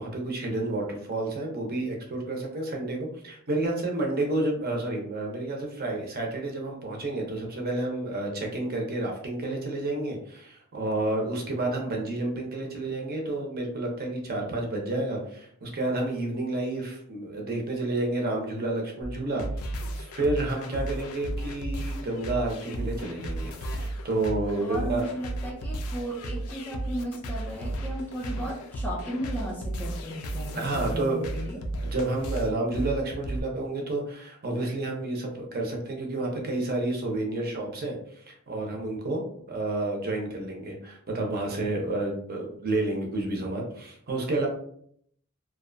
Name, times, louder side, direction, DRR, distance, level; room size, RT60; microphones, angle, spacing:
voice 1, 0.0-25.1 30.5-31.2 31.8-39.2 39.5-44.5, right 2 dB, 45° right, 0 dB, 0.6 m, -30 dB
sound 1, 19.0-33.4, right 1 dB, 90° left, 0.4 m, -34 dB
voice 2, 24.6-31.6, equal, 10° left, -2 dB, 0.3 m, -35 dB
2.5 x 2.2 x 2.5 m, 0.65 s
head